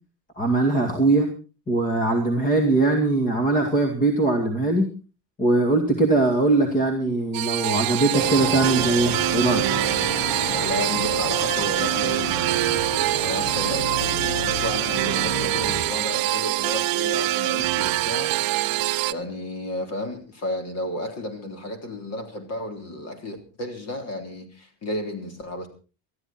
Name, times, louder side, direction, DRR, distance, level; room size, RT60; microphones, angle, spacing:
voice 1, 0.4-1.3 1.7-4.9 5.4-9.7, right 2 dB, 20° left, 5 dB, 2.2 m, -21 dB
sound 1, 7.3-19.1, right 17 dB, 50° right, 0.8 m, -24 dB
sound 2, 8.1-15.8, left 4 dB, 65° left, 2.5 m, -32 dB
voice 2, 10.5-18.3 19.1-25.7, left 1 dB, 35° left, 7 dB, 3.6 m, -33 dB
20.0 x 13.5 x 4.3 m, 0.35 s
cardioid pair, 160°, 44 cm